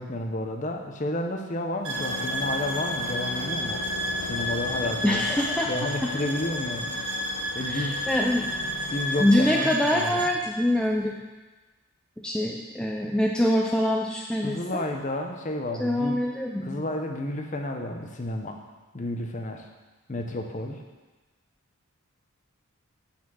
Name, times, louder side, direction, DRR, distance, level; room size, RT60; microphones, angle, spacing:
voice 1, 0.0-3.8 4.2-5.2 5.7-6.9 7.5-8.0 8.9-10.2 14.4-16.2 16.6-18.6 18.9-19.6 20.1-20.8, left 1 dB, 35° left, 3 dB, 0.7 m, -31 dB
sound 1, 1.8-10.4, right 1 dB, 65° right, 1.7 m, -31 dB
sound 2, 1.9-10.5, left 5 dB, 70° left, 0.4 m, -39 dB
voice 2, 5.0-5.7 7.7-8.5 9.2-11.1 12.2-14.9 15.8-16.8, left 1 dB, 5° left, -1 dB, 0.4 m, -25 dB
8.5 x 4.3 x 6.2 m, 1.2 s
head